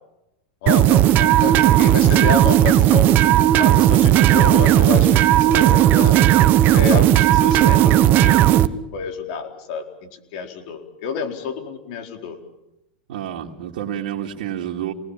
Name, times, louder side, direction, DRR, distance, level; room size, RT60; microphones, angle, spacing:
voice 1, 0.6-6.2 6.7-8.7 8.9-12.4, left 6 dB, 55° left, 5 dB, 4.4 m, -29 dB
sound 1, 0.7-8.7, right 12 dB, 35° right, 1.1 m, -14 dB
voice 2, 13.1-14.9, right 11 dB, 70° right, -1 dB, 2.5 m, -29 dB
29.0 x 19.5 x 7.4 m, 0.90 s
hypercardioid pair, 130°, 5 cm